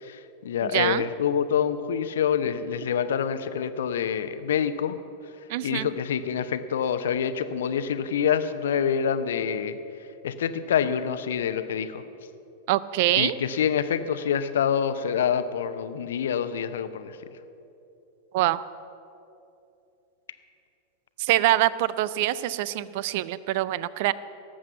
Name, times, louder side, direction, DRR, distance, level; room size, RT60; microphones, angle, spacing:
voice 1, 0.0-5.0 5.6-9.8 10.2-12.0 13.2-17.2, left 8 dB, 60° left, 11 dB, 0.7 m, -26 dB
voice 2, 0.6-1.0 5.5-5.9 12.7-13.3 18.3-18.6 21.2-24.1, right 16 dB, 50° right, 18 dB, 0.4 m, -24 dB
18.0 x 7.6 x 6.9 m, 2.9 s
figure-of-eight pair, 90°, 0 cm